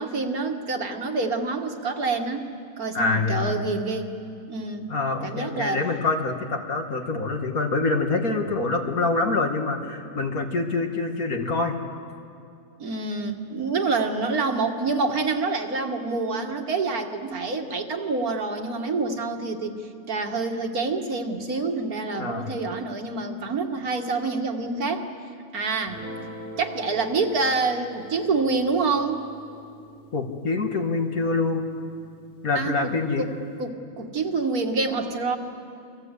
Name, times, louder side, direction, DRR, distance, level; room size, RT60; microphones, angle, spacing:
voice 1, 0.0-2.5 2.8-4.1 4.5-4.9 5.2-5.8 12.8-19.7 20.1-25.1 25.5-26.0 26.6-29.3 32.6-33.3 33.6-35.4, right 3 dB, 70° right, 4 dB, 2.2 m, -27 dB
voice 2, 2.9-3.6 4.9-11.8 22.2-22.5 30.1-31.7 32.4-33.3, left 3 dB, 65° left, 3 dB, 2.5 m, -25 dB
Guitar, 25.8-32.4, equal, 40° left, 3.7 m, -44 dB
29.0 x 23.5 x 8.2 m, 2.5 s
omnidirectional pair, 1.6 m